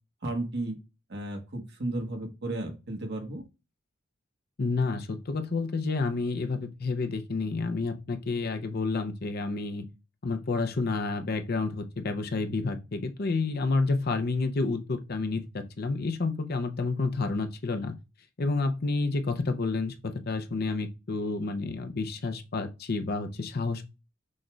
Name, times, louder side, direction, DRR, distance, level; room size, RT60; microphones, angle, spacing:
voice 1, 0.2-0.8 1.1-3.4, right 2 dB, 55° right, 1.3 m, -33 dB
voice 2, 4.6-9.9 10.2-18.0 18.4-23.8, left 3 dB, 50° left, 0.6 m, -30 dB
6.2 x 2.4 x 3.1 m
head